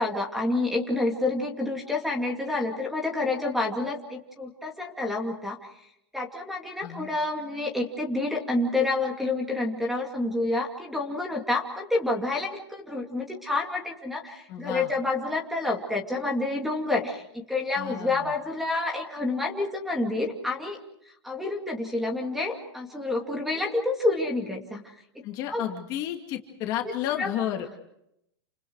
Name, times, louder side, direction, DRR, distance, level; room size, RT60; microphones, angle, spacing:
voice 1, 0.0-5.6 6.1-20.8 21.2-24.8 25.1-25.2 25.5-25.6 27.2-27.3, left 2 dB, ahead, 2 dB, 2.5 m, -28 dB
voice 2, 14.5-14.9 17.7-18.3 25.2-27.7, left 11 dB, 30° left, 2 dB, 2.3 m, -32 dB
29.5 x 28.0 x 4.8 m, 0.79 s
supercardioid pair, 165°, 13 cm